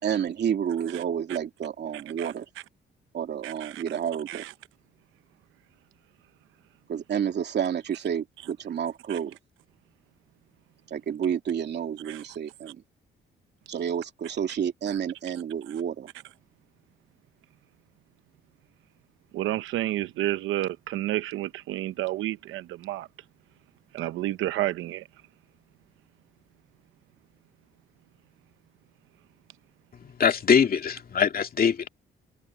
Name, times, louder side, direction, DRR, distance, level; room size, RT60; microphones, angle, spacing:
voice 1, 0.0-2.5 3.1-4.5 6.9-9.4 10.9-12.8 13.7-16.1, right 8 dB, 60° right, 2.8 m, -30 dB
voice 2, 3.4-3.8 4.3-4.5 9.1-9.2 12.1-12.2 19.3-23.1 23.9-25.1, right 15 dB, 90° right, 0.8 m, -30 dB
voice 3, 30.2-31.9, left 7 dB, 50° left, 2.3 m, -22 dB
cardioid pair, 90°, 20 cm